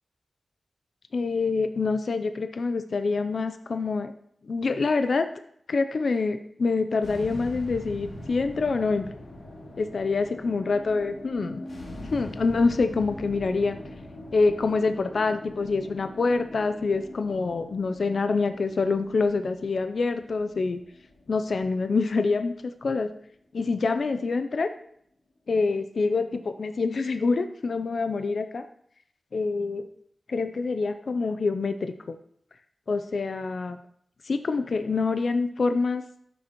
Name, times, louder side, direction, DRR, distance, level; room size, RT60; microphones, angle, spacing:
voice 1, 1.1-4.1 4.4-5.3 5.7-9.1 9.8-11.6 12.1-13.8 14.3-20.8 21.3-23.1 23.5-24.7 25.5-28.6 29.3-29.9 30.3-32.1 32.9-33.8 34.2-36.0, left 4 dB, 70° left, 8 dB, 0.5 m, -26 dB
sound 1, 7.0-23.4, left 1 dB, 90° left, 2.3 m, -42 dB
14.0 x 6.3 x 3.0 m, 0.69 s
wide cardioid pair, 70°, 0 cm